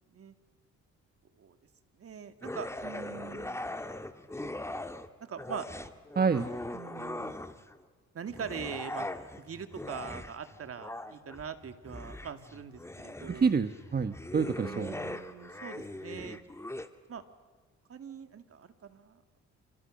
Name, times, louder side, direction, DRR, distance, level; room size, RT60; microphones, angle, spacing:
voice 1, 2.0-3.6 4.4-4.6 5.2-5.7 6.7-7.3 8.1-9.1 9.4-13.6 14.6-16.4 17.1-17.2 17.9-19.2, right 7 dB, 50° right, 9 dB, 2.4 m, -42 dB
sound 1, 2.4-5.1 5.4-7.8 8.3-16.9, left 1 dB, 10° left, 1.7 m, -40 dB
voice 2, 6.1-6.5 13.3-15.0, right 5 dB, 30° right, 10 dB, 1.2 m, -28 dB
28.5 x 28.0 x 6.6 m, 1.5 s
cardioid pair, 90°, 30 cm